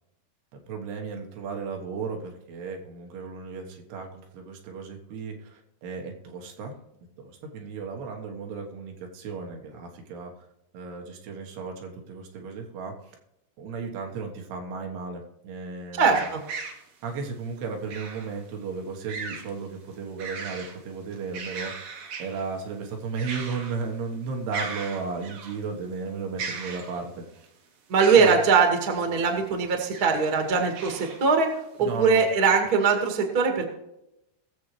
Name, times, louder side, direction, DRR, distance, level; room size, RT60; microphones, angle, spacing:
voice 1, 0.7-6.7 7.2-10.3 10.7-12.9 13.6-16.3 17.0-21.7 22.2-27.5 28.1-28.4 31.8-32.2, right 5 dB, 80° right, 2 dB, 3.4 m, -35 dB
voice 2, 16.0-16.4 27.9-31.5 31.8-33.6, right 5 dB, 35° right, 3 dB, 1.5 m, -21 dB
sound 1, 16.1-16.8 17.9-18.3 19.1-19.5 19.9-20.8 21.1-22.5 23.2-23.8 24.1-24.2 24.5-25.6 26.4-27.3 28.0-28.5 29.7-30.3 30.7-31.2 31.7-31.8 32.5-32.6, right 5 dB, 60° right, 1.9 m, -37 dB
20.5 x 7.4 x 3.2 m, 0.86 s
omnidirectional pair, 4.8 m